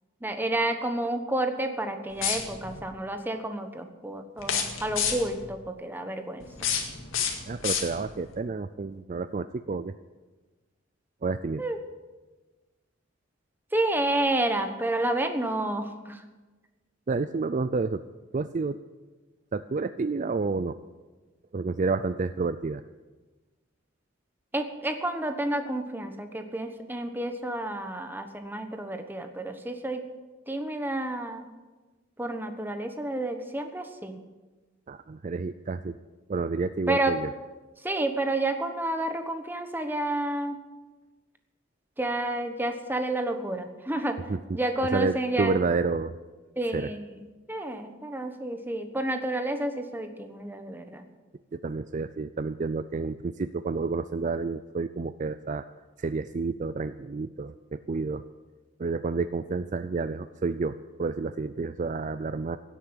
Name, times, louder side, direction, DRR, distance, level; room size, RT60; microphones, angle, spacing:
voice 1, 0.2-6.4 11.6-11.8 13.7-16.2 24.5-30.0 30.5-31.5 32.2-34.2 36.9-37.1 37.8-40.6 42.0-44.2 44.5-45.6 46.6-51.0, right 1 dB, 10° right, 7 dB, 1.2 m, -30 dB
sound 1, 2.1-2.8 4.4-5.4 6.4-8.3, left 7 dB, 80° left, 2.0 m, -30 dB
voice 2, 7.5-9.9 11.2-11.6 17.1-18.0 18.3-18.8 19.5-20.8 21.5-22.8 34.9-36.0 36.3-37.3 44.3-44.6 44.9-46.2 46.7-46.9 51.5-55.6 56.0-58.2 58.8-62.6, right 4 dB, 40° right, 12 dB, 0.4 m, -30 dB
16.5 x 8.3 x 8.8 m, 1.2 s
head